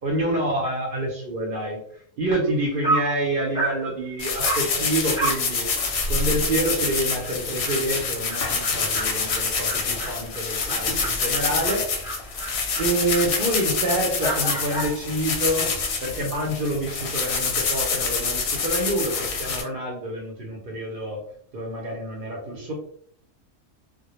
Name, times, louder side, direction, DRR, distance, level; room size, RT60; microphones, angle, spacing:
voice 1, 0.0-1.8 2.2-5.7 6.1-12.2 12.8-15.7 16.0-21.2 21.5-22.7, right 1 dB, 55° right, -1 dB, 0.6 m, -27 dB
Dog, 2.5-2.6 2.8-3.2 3.5-3.8 4.4-4.7 5.1-5.5 5.8-5.9 6.3-6.4 6.8-6.9 7.2-15.0, right 2 dB, 5° right, 0.3 m, -32 dB
sound 1, 4.2-19.6, left 4 dB, 65° left, 0.8 m, -26 dB
2.1 x 2.1 x 2.9 m, 0.62 s
omnidirectional pair, 1.3 m